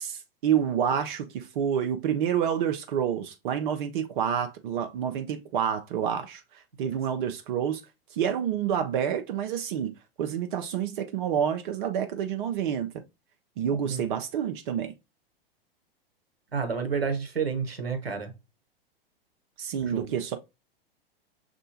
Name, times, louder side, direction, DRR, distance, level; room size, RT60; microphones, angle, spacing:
voice 1, 0.0-7.8 8.1-12.9 13.6-14.9 19.6-20.4, right 8 dB, 55° right, 0.6 m, -28 dB
voice 2, 13.7-14.0 16.5-18.3 19.8-20.1, right 5 dB, 85° right, 1.1 m, -30 dB
6.3 x 2.6 x 2.8 m
figure-of-eight pair, 100°, 30 cm